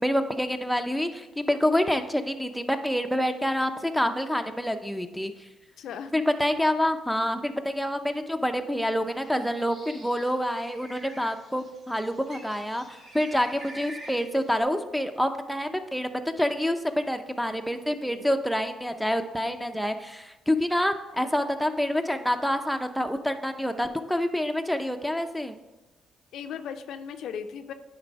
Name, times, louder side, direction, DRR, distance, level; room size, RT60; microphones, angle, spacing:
voice 1, 0.0-5.3 6.1-25.5, equal, ahead, 6 dB, 0.6 m, -27 dB
voice 2, 5.8-6.1 18.0-18.2 26.3-27.7, left 7 dB, 75° left, 8 dB, 0.5 m, -37 dB
Bird, 9.1-14.6, right 1 dB, 55° right, 2.3 m, -47 dB
9.5 x 3.3 x 5.1 m, 1.1 s
cardioid pair, 90°, 0 cm